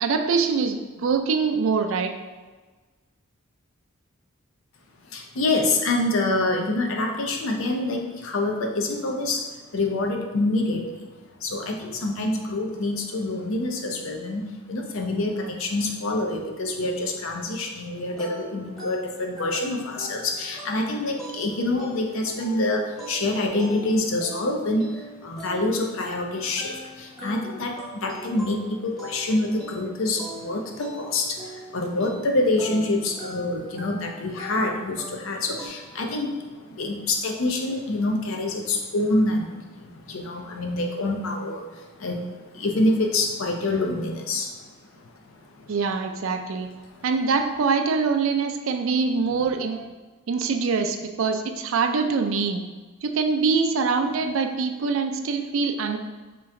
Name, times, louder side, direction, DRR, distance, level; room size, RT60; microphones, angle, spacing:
voice 1, 0.0-2.1 45.7-46.7 47.0-49.9 50.3-52.6 53.0-56.0, right 5 dB, 65° right, 6 dB, 0.4 m, -24 dB
voice 2, 5.1-45.7 46.9-47.0, left 2 dB, 65° left, 2 dB, 0.5 m, -26 dB
sound 1, 18.2-35.7, equal, ahead, 0.7 m, -41 dB
3.3 x 3.0 x 3.6 m, 1.3 s
head